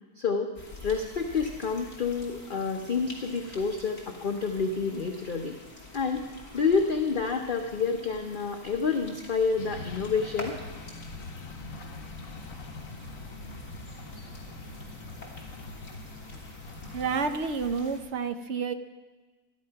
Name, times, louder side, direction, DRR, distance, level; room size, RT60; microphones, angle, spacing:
voice 1, 0.2-0.5 0.8-5.5 5.9-6.2 6.5-10.6, left 5 dB, 40° left, 3 dB, 0.9 m, -28 dB
sound 1, 0.5-18.0, left 2 dB, 25° left, 3.2 m, -47 dB
sound 2, 9.6-17.2, left 2 dB, 65° left, 1.4 m, -43 dB
voice 2, 16.9-18.7, right 5 dB, 55° right, 9 dB, 0.9 m, -29 dB
13.0 x 11.5 x 5.7 m, 1.2 s
omnidirectional pair, 1.6 m